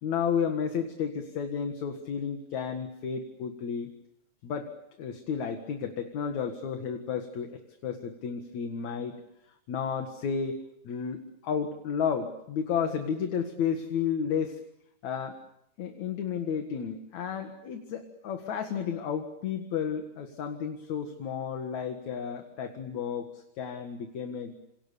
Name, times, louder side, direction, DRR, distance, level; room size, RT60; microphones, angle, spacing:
voice 1, 0.0-3.9 4.4-4.7 5.0-9.2 9.7-10.6 10.8-14.6 15.0-15.4 15.8-24.5, left 7 dB, 65° left, 5 dB, 3.1 m, -32 dB
28.0 x 27.5 x 6.9 m, 0.78 s
omnidirectional pair, 3.5 m